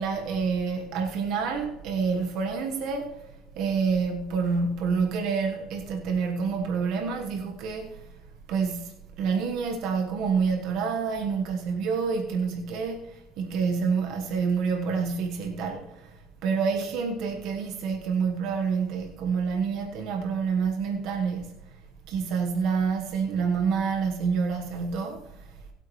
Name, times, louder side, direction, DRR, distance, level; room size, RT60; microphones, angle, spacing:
voice 1, 0.0-3.2 3.6-8.0 8.5-21.5 22.1-25.5, right 5 dB, 60° right, 1.3 m, -28 dB
19.5 x 8.3 x 3.2 m
cardioid pair, 145°, 0 cm